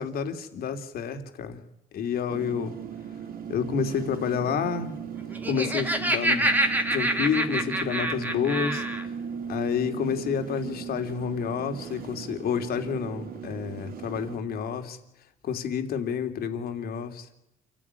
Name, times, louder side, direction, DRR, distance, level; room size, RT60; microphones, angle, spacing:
voice 1, 0.0-1.6 1.9-2.7 3.5-4.9 5.5-6.5 6.9-8.8 9.5-15.0 15.4-17.3, left 7 dB, 65° left, 7 dB, 3.4 m, -29 dB
sound 1, 2.3-14.4, right 7 dB, 60° right, 3.9 m, -37 dB
Laughter, 5.2-9.1, right 1 dB, 10° right, 2.7 m, -26 dB
28.0 x 15.0 x 10.0 m, 0.88 s
cardioid pair, 110°, 17 cm